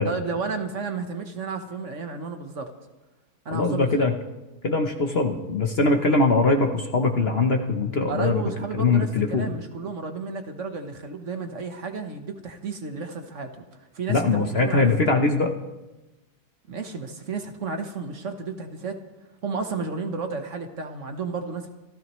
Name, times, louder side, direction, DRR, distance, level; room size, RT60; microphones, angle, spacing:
voice 1, 0.0-2.7 3.4-4.1 8.1-15.1 16.7-19.0 19.4-21.7, right 4 dB, 50° right, 6 dB, 1.3 m, -32 dB
voice 2, 3.5-4.1 4.6-8.4 8.7-9.5 14.1-15.5, left 3 dB, 45° left, 4 dB, 1.0 m, -22 dB
27.0 x 14.0 x 3.1 m, 1.1 s
omnidirectional pair, 1.7 m